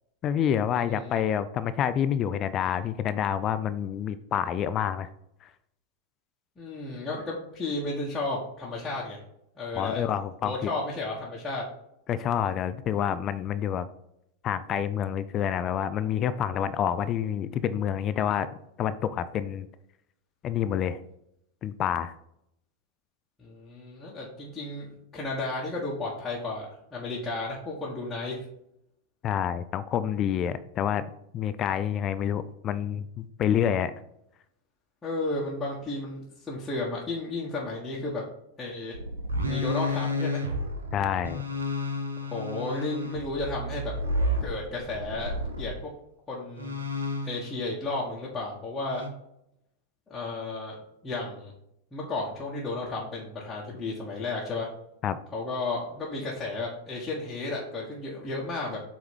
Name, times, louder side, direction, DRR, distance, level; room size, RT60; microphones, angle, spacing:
voice 1, 0.2-5.1 5.4-5.5 9.7-10.5 12.1-13.9 14.4-18.5 18.8-19.7 20.4-21.0 21.6-22.1 29.2-31.0 31.3-33.9 40.9-41.4 55.0-55.2, left 9 dB, 30° left, 14 dB, 0.4 m, -28 dB
voice 2, 0.7-1.2 6.6-9.2 9.6-10.0 10.4-11.6 23.4-28.4 35.0-38.2 38.6-38.9 39.4-40.4 42.2-43.9 44.4-45.7 46.3-46.7 47.2-49.0 50.1-50.7 51.0-51.5 51.9-54.7 55.3-58.8, left 2 dB, 15° left, -7 dB, 1.5 m, -33 dB
sound 1, 38.9-45.8 46.6-47.6 48.9-49.1, left 1 dB, 70° right, 1.2 m, -31 dB
8.0 x 3.2 x 5.3 m, 0.78 s
figure-of-eight pair, 90°, 0 cm